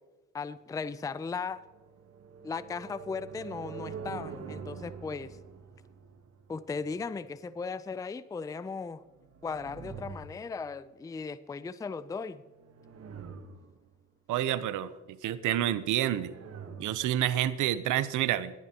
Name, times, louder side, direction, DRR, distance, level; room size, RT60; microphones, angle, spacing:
voice 1, 0.3-1.6 2.4-5.4 6.5-9.0 9.4-12.4, left 5 dB, 10° left, 16 dB, 0.4 m, -37 dB
sound 1, 1.3-7.0 9.0-10.8 12.4-13.9 15.8-17.1, right 6 dB, 55° right, 1.3 m, -45 dB
voice 2, 14.3-14.9 15.2-16.4 16.8-18.5, right 12 dB, 85° right, 15 dB, 0.7 m, -28 dB
18.0 x 11.0 x 2.9 m, 1.2 s
cardioid pair, 90°, 30 cm